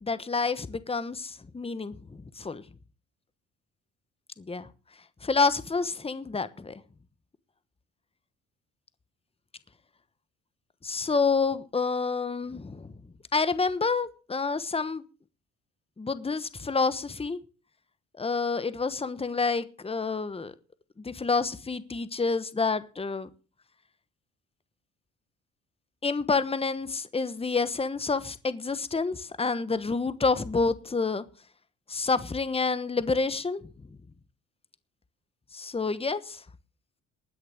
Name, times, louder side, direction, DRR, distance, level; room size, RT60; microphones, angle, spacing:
voice 1, 0.0-2.0 2.4-2.6 4.4-4.7 5.2-6.8 10.8-12.9 13.3-15.0 16.0-17.4 18.2-20.5 21.0-23.3 26.0-31.2 31.9-33.6 35.5-36.4, left 4 dB, 20° left, 1.2 m, -28 dB
20.0 x 6.6 x 6.6 m
cardioid pair, 90°, 30 cm